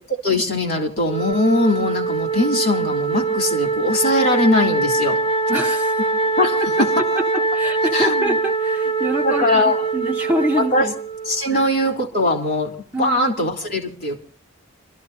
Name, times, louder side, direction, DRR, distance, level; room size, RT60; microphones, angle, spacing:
voice 1, 0.1-5.2 6.4-6.5 6.8-7.1 7.9-8.4 9.2-9.8 10.6-10.9 11.2-12.7 13.0-14.2, left 1 dB, 45° left, 3 dB, 2.9 m, -20 dB
Wind instrument woodwind instrument, 1.1-11.5, right 3 dB, 25° left, 0.8 m, -23 dB
voice 2, 5.5-6.1 6.8-6.9 7.3-9.6 9.9-10.9 11.5-11.7 12.9-13.2, right 1 dB, 5° right, -1 dB, 1.0 m, -25 dB
27.5 x 13.5 x 2.8 m, 0.42 s
head